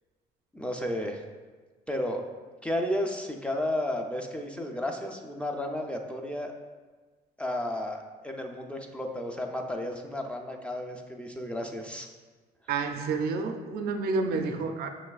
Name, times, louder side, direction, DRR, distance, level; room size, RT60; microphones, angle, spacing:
voice 1, 0.5-1.2 1.9-2.2 2.6-6.5 7.4-12.1 14.3-14.5, left 1 dB, 5° left, 2 dB, 0.4 m, -33 dB
voice 2, 12.7-14.9, right 4 dB, 65° right, 6 dB, 0.4 m, -29 dB
5.9 x 3.1 x 2.3 m, 1.4 s
cardioid pair, 110°, 17 cm